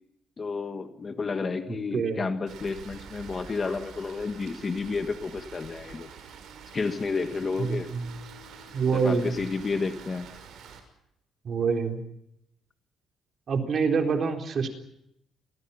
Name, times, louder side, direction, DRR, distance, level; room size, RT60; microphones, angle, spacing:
voice 1, 0.4-6.1 6.7-7.9 8.9-10.3, left 4 dB, 25° left, 8 dB, 1.6 m, -31 dB
voice 2, 1.9-2.2 7.6-8.1 8.7-9.3 11.4-12.0 13.5-14.7, right 5 dB, 40° right, 4 dB, 4.1 m, -26 dB
Rain, 2.5-10.8, right 6 dB, 65° right, 6.3 m, -46 dB
30.0 x 23.0 x 5.8 m, 0.79 s
cardioid pair, 160°, 0 cm